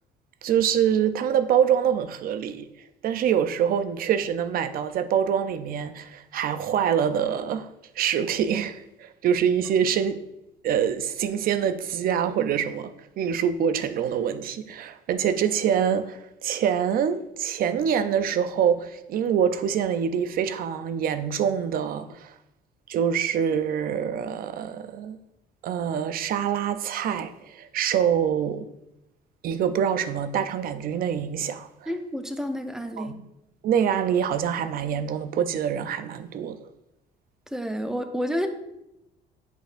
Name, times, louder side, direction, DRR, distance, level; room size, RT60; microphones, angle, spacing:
voice 1, 0.4-2.7 3.0-7.7 8.0-10.2 10.6-22.3 22.9-25.2 25.6-28.7 29.4-31.9 33.0-33.2 33.6-36.6, right 8 dB, 60° right, 0.5 m, -25 dB
voice 2, 31.9-33.2 37.5-38.5, equal, 5° right, 0.6 m, -29 dB
8.0 x 6.3 x 2.6 m
cardioid pair, 110°, 17 cm